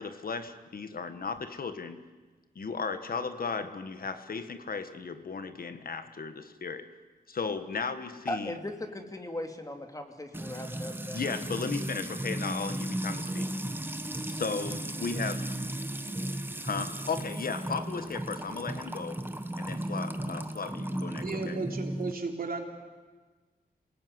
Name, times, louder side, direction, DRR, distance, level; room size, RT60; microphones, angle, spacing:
voice 1, 0.0-2.0 2.5-6.9 7.3-8.5 11.1-13.5 14.3-15.4 16.6-19.2 19.6-21.6, left 5 dB, 65° left, 10 dB, 1.5 m, -35 dB
voice 2, 8.3-11.2, left 1 dB, 20° left, 5 dB, 2.7 m, -38 dB
Music / Water tap faucet / Trickle dribble, 10.3-22.1, right 1 dB, 15° right, 1.3 m, -35 dB
voice 3, 21.2-22.6, right 4 dB, 65° right, 3 dB, 3.6 m, -34 dB
27.5 x 19.0 x 9.6 m, 1.4 s
wide cardioid pair, 115°, 16 cm